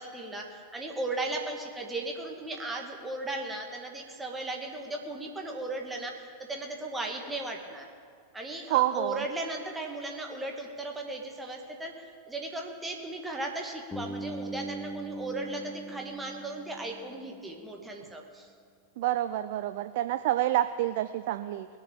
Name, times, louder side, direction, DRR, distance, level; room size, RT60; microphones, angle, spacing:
voice 1, 0.0-6.1 6.5-7.9 8.3-11.9 12.3-18.5, right 2 dB, 10° right, 1 dB, 2.1 m, -36 dB
voice 2, 8.7-9.2 19.0-21.7, right 14 dB, 50° right, 11 dB, 0.4 m, -28 dB
Bass guitar, 13.9-17.9, right 2 dB, 15° left, 1.4 m, -40 dB
19.5 x 6.8 x 8.8 m, 2.1 s
figure-of-eight pair, 90°, 0 cm